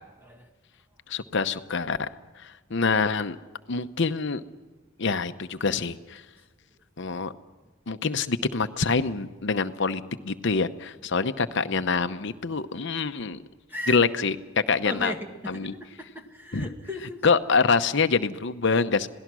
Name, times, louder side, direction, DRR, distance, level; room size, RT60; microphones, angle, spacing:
voice 1, 1.1-2.1 2.4-3.4 3.7-4.4 5.0-6.2 7.0-7.3 7.9-13.4 13.9-14.4 14.7-15.1 15.5-15.7 16.5-16.7 17.2-19.1, left 4 dB, 60° left, 10 dB, 0.8 m, -25 dB
voice 2, 14.8-17.2, equal, 10° right, 3 dB, 1.9 m, -37 dB
26.5 x 18.0 x 6.2 m, 1.3 s
head